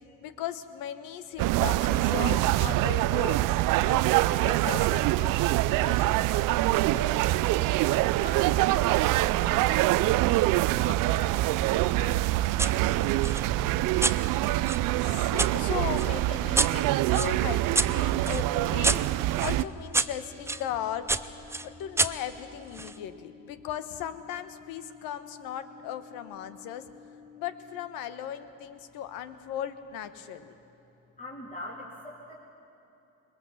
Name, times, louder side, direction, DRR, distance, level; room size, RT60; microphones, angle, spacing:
voice 1, 0.2-3.4 3.9-6.3 15.0-19.0 19.4-21.2 21.6-26.8 27.3-30.5, left 10 dB, 75° left, 11 dB, 1.2 m, -37 dB
sound 1, 1.4-19.6, right 17 dB, 65° right, 0.5 m, -25 dB
voice 2, 6.9-13.7 31.2-32.3, left 1 dB, 20° left, -5 dB, 3.3 m, -44 dB
sound 2, 12.6-12.8 13.2-15.5 16.0-20.6 21.1-23.0, right 2 dB, 10° right, 0.6 m, -30 dB
sound 3, 17.9-27.9, left 6 dB, 90° left, 1.4 m, -52 dB
21.0 x 20.5 x 7.2 m, 2.9 s
supercardioid pair, 80°, 35 cm